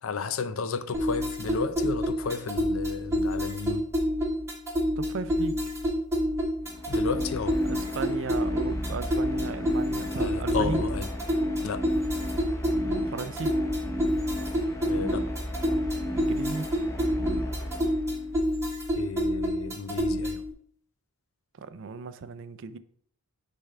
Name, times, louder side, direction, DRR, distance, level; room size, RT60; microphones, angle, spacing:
voice 1, 0.0-3.9 6.9-7.6 10.2-11.1 11.6-11.9 14.9-15.3 18.9-20.4, left 5 dB, 65° left, 0.5 m, -33 dB
sound 1, 0.9-20.5, equal, 15° right, 1.2 m, -28 dB
voice 2, 5.0-5.6 7.7-10.8 13.1-13.6 16.1-16.7 21.6-22.8, right 4 dB, 55° right, 0.4 m, -35 dB
sound 2, 6.6-18.4, equal, 15° left, 0.8 m, -35 dB
6.6 x 3.6 x 5.5 m
head